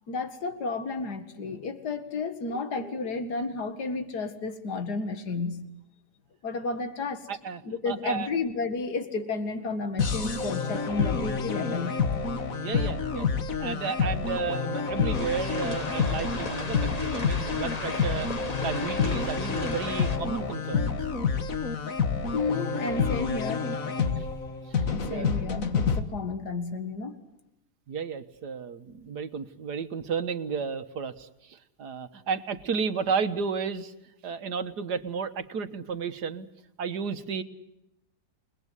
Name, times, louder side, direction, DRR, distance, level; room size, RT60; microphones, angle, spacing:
voice 1, 0.1-5.6 6.4-7.3 7.6-12.0 22.3-23.6 24.8-27.2, left 3 dB, 80° left, 9 dB, 2.4 m, -32 dB
voice 2, 7.3-7.6 7.9-8.3 12.6-13.3 13.6-18.3 18.6-21.1 24.2-24.3 25.0-25.3 27.9-33.9 34.2-36.5 36.8-37.4, right 6 dB, 80° right, 10 dB, 1.9 m, -33 dB
sound 1, 10.0-26.0, left 5 dB, 55° left, 2.0 m, -28 dB
sound 2, 15.1-20.2, left 3 dB, 25° left, 1.5 m, -36 dB
29.5 x 21.0 x 8.2 m, 0.85 s
omnidirectional pair, 1.7 m